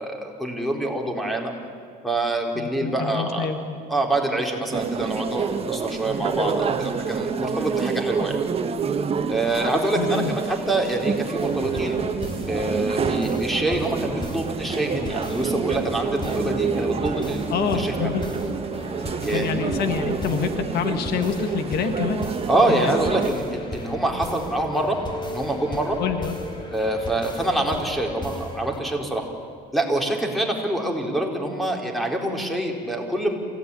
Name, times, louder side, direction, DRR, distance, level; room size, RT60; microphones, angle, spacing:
voice 1, 0.0-1.5 2.0-3.5 3.9-8.4 9.3-12.0 12.5-17.5 17.7-17.9 19.2-20.0 22.5-25.0 25.3-26.0 26.7-29.3 29.7-33.3, right 1 dB, ahead, 2 dB, 4.0 m, -25 dB
voice 2, 2.5-3.8 10.0-10.4 17.5-18.3 19.0-22.3 22.7-23.0 26.0-26.4, left 7 dB, 70° left, 8 dB, 1.7 m, -27 dB
sound 1, 4.7-23.3, right 6 dB, 35° right, 1.5 m, -28 dB
sound 2, 11.4-28.8, left 1 dB, 25° left, 4.7 m, -35 dB
27.0 x 17.0 x 9.9 m, 2.1 s
cardioid pair, 110°, 17 cm